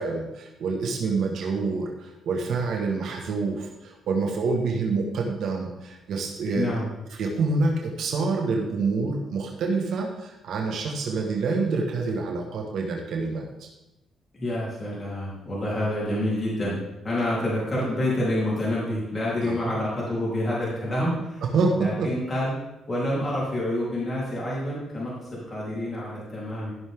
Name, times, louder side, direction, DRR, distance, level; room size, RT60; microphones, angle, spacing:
voice 1, 0.0-6.7 7.2-13.7 19.4-19.7 21.4-22.1, right 4 dB, 70° right, 1 dB, 1.7 m, -27 dB
voice 2, 6.5-6.9 14.3-21.4 21.7-22.5 22.9-26.7, left 1 dB, 25° left, -7 dB, 3.8 m, -28 dB
14.5 x 6.4 x 3.8 m, 0.96 s
cardioid pair, 90°, 0 cm